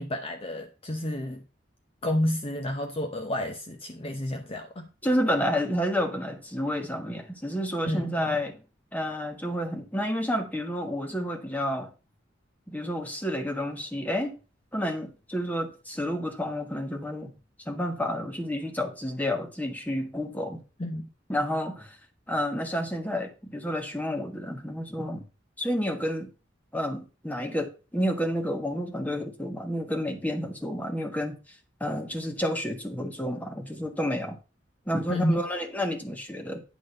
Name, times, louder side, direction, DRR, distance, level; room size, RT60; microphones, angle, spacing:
voice 1, 0.0-1.4 2.0-4.9 7.8-8.2 20.8-21.1 35.1-35.4, left 1 dB, 30° left, 5 dB, 0.8 m, -30 dB
voice 2, 5.0-8.6 8.9-11.9 12.7-14.4 14.7-17.3 17.6-20.6 21.3-22.0 22.3-25.2 25.6-26.3 26.7-31.4 31.8-34.4 34.9-36.6, equal, 10° left, 3 dB, 1.4 m, -30 dB
10.0 x 3.8 x 6.5 m, 0.32 s
head